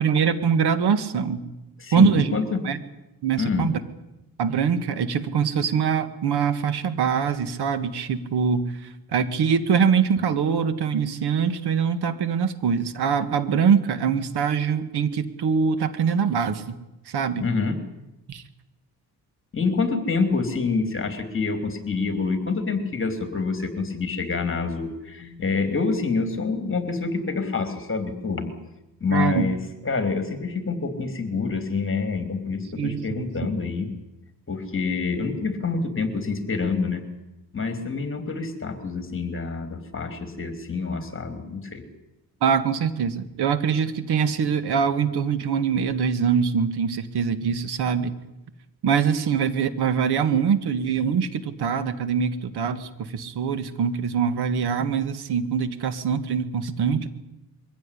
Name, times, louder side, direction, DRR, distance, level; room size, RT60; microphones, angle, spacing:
voice 1, 0.0-1.4 1.9-2.4 2.6-2.8 3.2-3.8 4.4-8.7 9.1-16.8 17.1-17.5 18.3-18.4 29.1-29.5 32.8-33.3 42.4-48.1 48.8-57.1, right 7 dB, 80° right, 12 dB, 1.9 m, -23 dB
voice 2, 1.8-2.6 3.4-3.7 17.4-17.8 19.5-28.5 29.0-29.6 29.8-33.9 34.5-37.0 37.5-41.9, left 4 dB, 30° left, 8 dB, 3.2 m, -27 dB
22.5 x 16.0 x 10.0 m, 0.93 s
cardioid pair, 110°, 39 cm